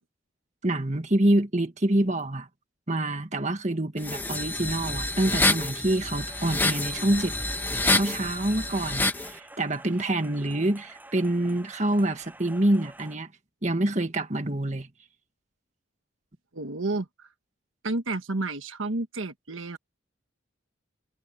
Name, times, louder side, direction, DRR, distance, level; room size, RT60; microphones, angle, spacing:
voice 1, 0.6-2.5 2.9-7.3 7.9-13.3 13.6-14.9, right 1 dB, 35° right, 1.8 m, -26 dB
sound 1, 4.0-9.3, left 2 dB, 10° left, 1.1 m, -27 dB
sound 2, 6.1-13.2, right 1 dB, 10° right, 7.6 m, -49 dB
voice 2, 16.5-17.3 17.8-19.8, right 2 dB, 75° right, 1.4 m, -31 dB
head